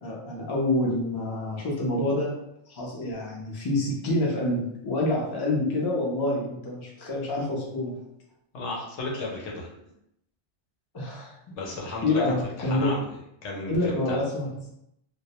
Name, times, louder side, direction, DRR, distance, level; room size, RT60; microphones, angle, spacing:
voice 1, 0.0-2.3 2.7-7.9 10.9-11.6 11.8-12.9 13.7-14.7, left 1 dB, 30° left, -3 dB, 0.4 m, -27 dB
voice 2, 8.5-9.7 11.5-12.2 12.6-13.0 13.4-13.8 14.1-14.2, left 2 dB, 75° left, -2 dB, 0.9 m, -33 dB
2.2 x 2.0 x 2.8 m, 0.78 s
omnidirectional pair, 1.2 m